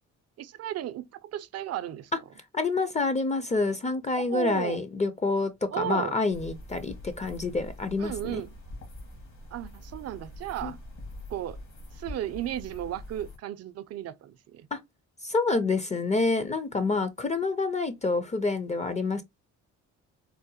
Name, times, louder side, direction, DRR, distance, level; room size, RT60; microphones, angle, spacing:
voice 1, 0.4-2.1 4.1-4.8 5.7-6.2 8.0-8.5 9.5-10.8 11.3-11.6 11.9-14.7, right 12 dB, 55° right, 0.4 m, -34 dB
voice 2, 2.5-8.4 10.6-10.7 14.7-14.8 15.2-19.2, left 3 dB, 25° left, 0.4 m, -27 dB
sound 1, 6.3-13.4, left 1 dB, 70° left, 1.6 m, -44 dB
3.8 x 2.1 x 2.7 m
cardioid pair, 90°, 30 cm